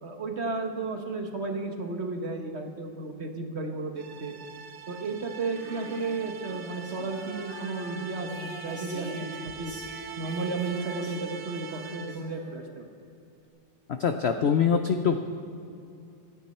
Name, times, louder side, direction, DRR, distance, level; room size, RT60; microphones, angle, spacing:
voice 1, 0.0-4.3 4.9-9.7 10.2-12.9, right 3 dB, 40° right, 4 dB, 1.4 m, -33 dB
sound 1, 4.0-12.4, right 6 dB, 85° right, 1.5 m, -43 dB
Female singing, 5.4-12.9, right 1 dB, 5° right, 3.5 m, -45 dB
voice 2, 13.9-15.2, left 7 dB, 75° left, 7 dB, 0.6 m, -24 dB
27.0 x 9.6 x 4.3 m, 2.7 s
omnidirectional pair, 1.9 m